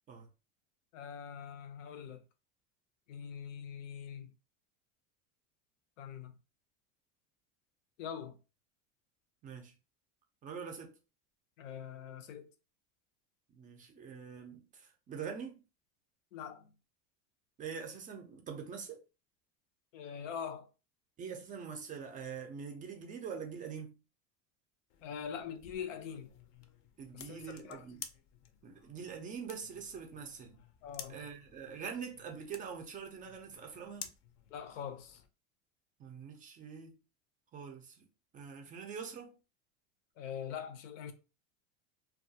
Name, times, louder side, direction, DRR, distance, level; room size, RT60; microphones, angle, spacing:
voice 1, 0.9-2.2 3.1-4.3 6.0-6.4 8.0-8.4 11.6-12.5 16.3-16.7 19.9-20.7 25.0-26.3 27.1-27.8 30.8-31.2 34.5-35.2 40.2-41.1, left 8 dB, 90° left, 0.6 m, -43 dB
voice 2, 10.4-10.9 13.5-15.5 17.6-19.0 21.2-23.9 27.0-28.0 28.6-30.6 31.1-34.1 36.0-36.9 37.5-38.0 38.3-39.4, right 6 dB, 25° right, 0.3 m, -44 dB
sound 1, 24.9-35.3, left 8 dB, 50° left, 0.5 m, -53 dB
2.3 x 2.2 x 2.6 m
supercardioid pair, 130°, 37 cm